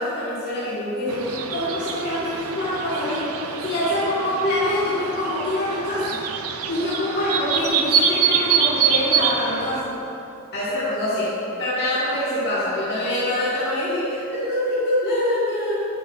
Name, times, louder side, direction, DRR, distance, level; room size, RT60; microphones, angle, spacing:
voice 1, 0.0-6.2 6.7-9.9 10.5-15.8, left 1 dB, 50° left, -11 dB, 1.5 m, -25 dB
sound 1, 1.1-9.8, right 6 dB, 80° right, 0.5 m, -25 dB
10.0 x 7.7 x 2.4 m, 2.9 s
head